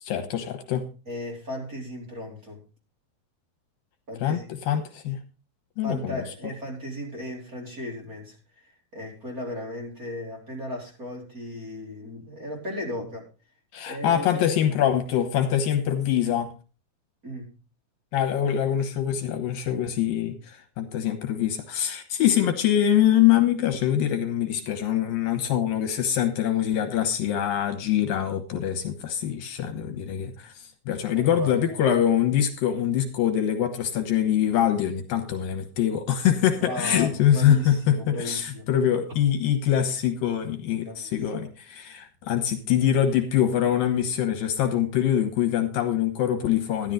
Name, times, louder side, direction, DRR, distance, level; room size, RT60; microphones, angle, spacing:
voice 1, 0.0-0.9 4.2-5.2 5.8-6.2 13.7-16.5 18.1-46.9, left 10 dB, 75° left, 2.7 m, -24 dB
voice 2, 1.1-2.6 4.1-4.5 5.8-13.3 13.8-14.5 17.2-17.5 31.1-31.8 36.6-38.7 40.8-41.5, left 1 dB, 25° right, 3.3 m, -36 dB
13.0 x 11.0 x 3.8 m
omnidirectional pair, 4.4 m